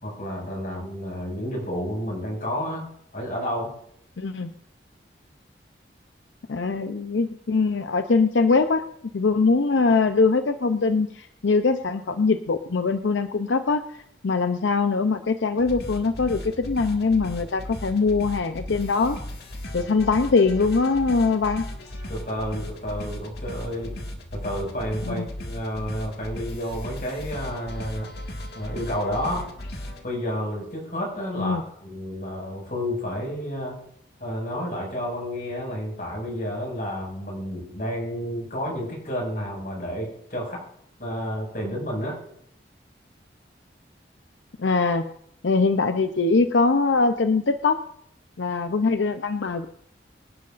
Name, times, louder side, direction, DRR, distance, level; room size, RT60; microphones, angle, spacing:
voice 1, 0.0-2.8 3.1-3.7 22.1-24.0 24.3-28.1 28.5-29.5 30.0-33.8 34.2-40.6 41.0-42.2, equal, 50° left, -1 dB, 6.1 m, -30 dB
voice 2, 4.2-4.5 6.5-8.8 9.1-19.2 19.7-21.6 25.1-25.3 31.4-31.6 44.6-45.1 45.4-47.8 48.4-49.7, left 4 dB, 90° left, 8 dB, 0.6 m, -22 dB
sound 1, 15.6-30.0, left 1 dB, 65° left, 1.8 m, -36 dB
25.0 x 11.5 x 2.5 m, 0.70 s
head